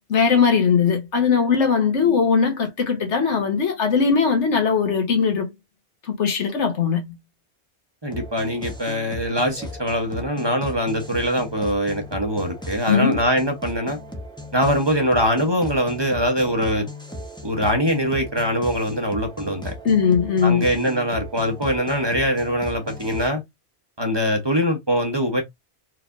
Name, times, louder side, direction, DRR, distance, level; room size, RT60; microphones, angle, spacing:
voice 1, 0.1-5.5 6.0-7.1 12.9-13.2 19.8-20.7, left 6 dB, 90° left, 1.5 m, -19 dB
voice 2, 8.0-14.0 14.5-16.9 17.4-19.7 20.4-23.4 24.0-25.4, equal, 25° right, 1.1 m, -23 dB
sound 1, 8.1-23.3, left 1 dB, 5° left, 0.8 m, -37 dB
4.6 x 3.3 x 2.6 m
omnidirectional pair, 1.2 m